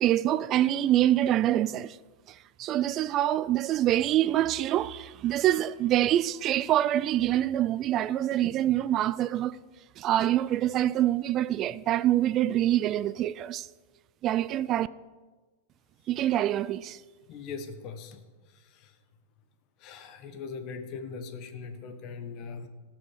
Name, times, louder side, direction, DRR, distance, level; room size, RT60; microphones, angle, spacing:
voice 1, 0.0-2.0 2.6-9.5 10.0-13.7 14.2-14.9 16.1-17.0, right 12 dB, 30° right, 0.3 m, -25 dB
voice 2, 17.3-18.2 18.5-19.0 19.8-22.7, left 5 dB, 40° left, 1.3 m, -40 dB
17.0 x 6.1 x 6.7 m
supercardioid pair, 155°, 0 cm